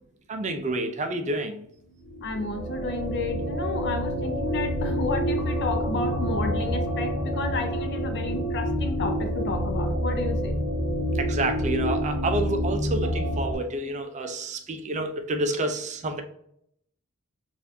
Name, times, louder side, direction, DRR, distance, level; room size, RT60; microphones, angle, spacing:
voice 1, 0.3-1.6 11.1-16.2, right 2 dB, 35° right, 6 dB, 0.4 m, -29 dB
sound 1, 2.0-13.5, equal, 85° left, 1.0 m, -28 dB
voice 2, 2.2-10.5, left 2 dB, 50° left, 6 dB, 0.6 m, -31 dB
4.2 x 2.5 x 2.7 m, 0.72 s
head